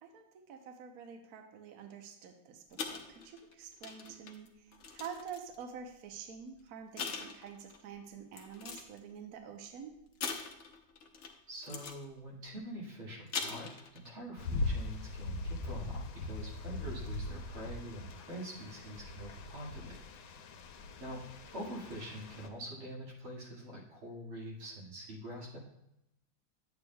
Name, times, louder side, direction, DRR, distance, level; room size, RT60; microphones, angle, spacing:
voice 1, 0.0-9.9 21.1-21.2, right 7 dB, 55° right, 4 dB, 1.2 m, -48 dB
sound 1, 2.7-5.6 6.4-6.6 7.0-7.8 8.3-9.0 10.2-11.4 11.6-12.0 13.1-14.1 14.4-14.6, left 5 dB, 55° left, 0.8 m, -42 dB
voice 2, 11.5-20.0 21.0-21.2 21.5-25.6, equal, 90° right, -4 dB, 3.0 m, -45 dB
sound 2, 14.4-22.5, left 2 dB, 75° left, 1.5 m, -40 dB
11.0 x 8.1 x 2.3 m, 0.85 s
omnidirectional pair, 2.2 m